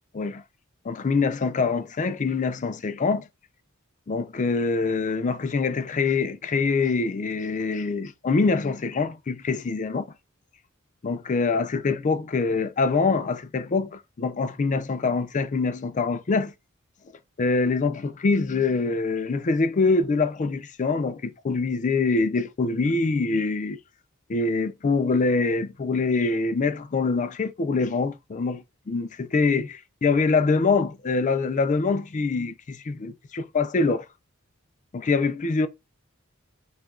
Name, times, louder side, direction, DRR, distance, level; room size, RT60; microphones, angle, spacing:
voice 1, 0.9-3.3 4.1-10.0 11.0-16.5 17.4-23.8 24.3-34.0 34.9-35.7, left 4 dB, 35° left, 0.4 m, -24 dB
4.9 x 2.4 x 3.7 m
head